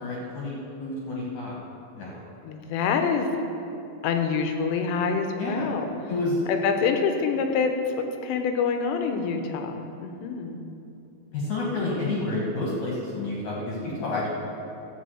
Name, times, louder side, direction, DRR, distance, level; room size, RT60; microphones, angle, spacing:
voice 1, 0.0-1.5 2.0-2.2 5.4-5.7 6.1-6.5 11.3-14.3, left 2 dB, 60° left, -4 dB, 2.1 m, -29 dB
voice 2, 2.4-3.3 4.0-5.8 6.5-10.6, left 5 dB, 80° left, 5 dB, 3.1 m, -26 dB
14.0 x 4.7 x 7.8 m, 2.7 s
omnidirectional pair, 5.1 m